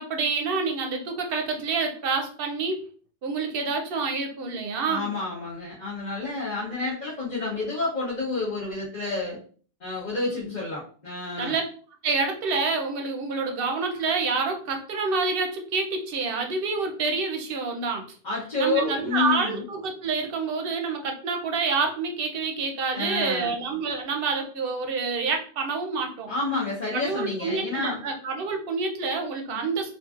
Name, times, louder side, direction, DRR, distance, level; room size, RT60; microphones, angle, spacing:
voice 1, 0.0-2.8 3.2-5.1 11.4-11.6 12.0-18.0 18.6-26.3 26.9-29.9, right 4 dB, 60° right, 3 dB, 0.8 m, -27 dB
voice 2, 4.9-9.4 9.8-11.6 18.2-19.6 22.9-23.5 26.3-28.0 29.5-29.6, left 3 dB, 45° left, -8 dB, 1.0 m, -29 dB
3.0 x 2.5 x 2.3 m, 0.43 s
omnidirectional pair, 1.1 m